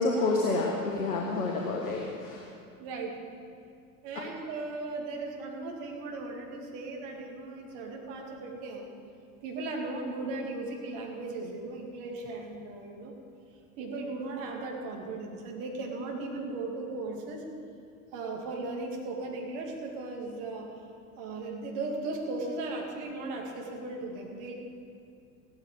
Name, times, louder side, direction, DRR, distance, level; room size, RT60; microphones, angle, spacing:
voice 1, 0.0-2.5, left 3 dB, 70° left, -1 dB, 1.7 m, -29 dB
voice 2, 2.8-3.2 4.0-8.9 9.4-13.1 13.8-17.5 18.1-20.7 21.1-24.5, right 3 dB, 55° right, 1 dB, 2.5 m, -37 dB
15.5 x 12.0 x 4.9 m, 2.4 s
figure-of-eight pair, 70°, 44 cm